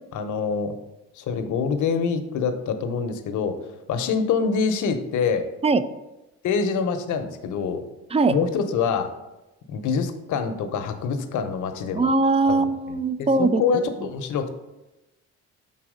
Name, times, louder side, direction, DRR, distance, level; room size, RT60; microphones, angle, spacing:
voice 1, 0.1-0.7 1.2-3.6 3.9-5.5 6.4-7.8 8.3-9.1 9.7-12.1 12.5-14.5, left 5 dB, 75° left, 7 dB, 0.8 m, -25 dB
voice 2, 12.0-13.8, right 3 dB, 20° right, 12 dB, 0.4 m, -21 dB
5.8 x 4.1 x 4.9 m, 1.0 s
cardioid pair, 90°, 30 cm